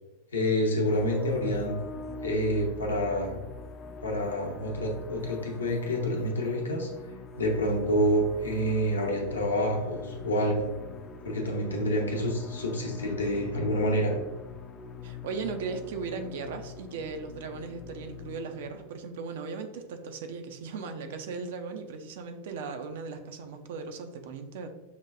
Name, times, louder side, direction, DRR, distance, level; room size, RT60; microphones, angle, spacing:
voice 1, 0.3-1.8 2.2-3.4 4.0-6.9 7.4-10.7 11.2-14.1, equal, 75° left, 0 dB, 0.7 m, -28 dB
sound 1, 0.9-18.9, left 4 dB, 25° left, 0.4 m, -43 dB
voice 2, 15.0-24.7, right 4 dB, 55° right, 7 dB, 0.4 m, -37 dB
5.8 x 2.2 x 2.4 m, 1.1 s
figure-of-eight pair, 90°, 0 cm